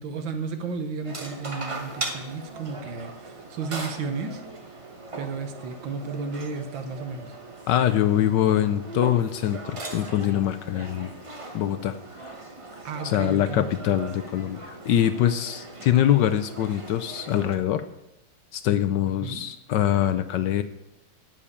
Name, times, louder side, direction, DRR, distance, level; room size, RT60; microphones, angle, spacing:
voice 1, 0.0-4.4 5.2-7.3 12.8-13.6 19.2-19.4, right 4 dB, 70° right, 8 dB, 1.8 m, -33 dB
sound 1, 1.0-17.6, right 2 dB, 25° right, 0.7 m, -39 dB
voice 2, 7.7-11.1 11.5-12.4 13.0-17.9 18.5-20.6, left 11 dB, 70° left, 11 dB, 1.1 m, -24 dB
12.0 x 5.7 x 8.6 m, 0.91 s
omnidirectional pair, 2.2 m